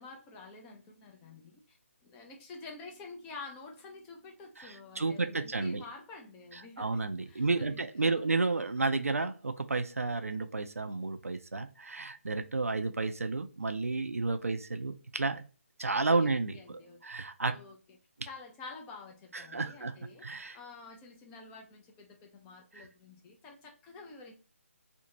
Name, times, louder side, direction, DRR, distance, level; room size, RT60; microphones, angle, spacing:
voice 1, 0.0-1.6 2.0-8.3 14.4-14.5 16.2-17.0 17.4-18.0 18.3-20.3 20.5-24.3, left 3 dB, 15° left, 1 dB, 0.4 m, -49 dB
voice 2, 4.6-5.8 6.8-15.5 15.8-17.6 19.3-19.9 20.2-20.6 22.8-22.9, right 3 dB, 90° right, 8 dB, 0.4 m, -32 dB
2.5 x 2.1 x 2.8 m, 0.36 s
figure-of-eight pair, 150°, 7 cm